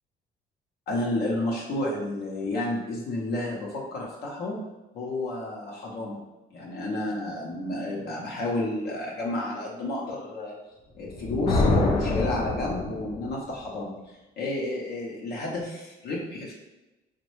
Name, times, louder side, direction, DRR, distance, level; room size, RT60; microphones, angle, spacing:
voice 1, 0.9-4.6 4.9-6.2 6.5-10.5 11.0-13.9 14.4-16.5, left 1 dB, 75° left, -3 dB, 0.7 m, -31 dB
Thunder, 11.0-13.4, left 2 dB, 40° left, 0.4 m, -26 dB
3.0 x 2.2 x 3.1 m, 1.0 s
cardioid pair, 110°, 17 cm